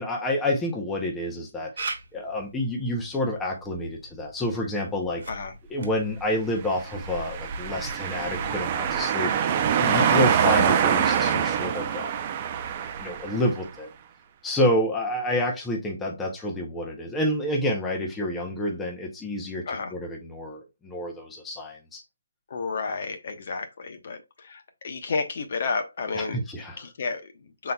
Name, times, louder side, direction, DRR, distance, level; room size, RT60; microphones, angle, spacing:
voice 1, 0.0-1.7 2.1-5.2 5.7-12.1 13.0-13.9 14.4-19.6 19.9-22.0 26.2-26.8, left 1 dB, 5° left, 0.7 m, -28 dB
Camera, 1.8-7.1, right 3 dB, 55° right, 1.2 m, -42 dB
sound 1, 6.8-13.6, right 8 dB, 30° right, 0.5 m, -25 dB
voice 2, 22.5-26.4 26.8-27.7, left 4 dB, 50° left, 0.8 m, -31 dB
5.5 x 4.0 x 2.3 m
hypercardioid pair, 160°, 0 cm